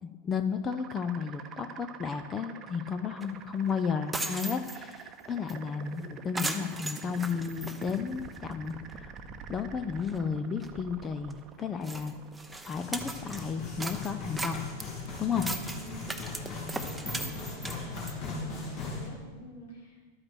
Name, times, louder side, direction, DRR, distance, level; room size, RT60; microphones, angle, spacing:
voice 1, 0.0-9.2 9.5-12.1 12.7-14.6 15.2-15.5, left 6 dB, 25° left, 9 dB, 0.7 m, -33 dB
sound 1, 0.7-19.4, right 6 dB, 30° right, 1.0 m, -48 dB
sound 2, 3.2-3.3 3.7-3.8 4.0-5.0 5.5-5.6 5.9-6.0 6.4-8.5 8.9-9.0 9.6-9.7 9.9-10.2 10.6-10.7 11.3-11.4 11.8-13.4 13.8-18.2, right 2 dB, 5° right, 0.9 m, -38 dB
voice 2, 5.6-6.0 15.8-16.1 16.6-20.1, equal, 60° left, -2 dB, 3.9 m, -50 dB
sound 3, 12.7-19.1, left 3 dB, 45° left, 3.9 m, -38 dB
12.0 x 8.9 x 6.2 m, 1.4 s
figure-of-eight pair, 90°, 0 cm